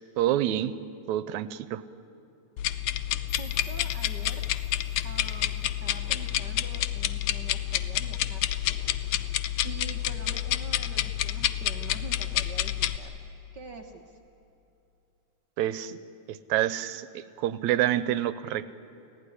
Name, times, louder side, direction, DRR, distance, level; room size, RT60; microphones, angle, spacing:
voice 1, 0.2-0.7 1.1-1.8 15.6-16.0 16.3-18.7, right 12 dB, 80° right, 15 dB, 2.0 m, -27 dB
sound 1, 2.6-13.0, left 13 dB, 80° left, 2.0 m, -29 dB
sound 2, 3.3-6.3, left 3 dB, 15° right, 6.8 m, -53 dB
voice 2, 3.4-4.4 5.0-8.7 9.6-13.2 13.5-14.2, right 4 dB, 55° right, 4 dB, 1.3 m, -45 dB
30.0 x 17.0 x 9.9 m, 2.8 s
omnidirectional pair, 3.3 m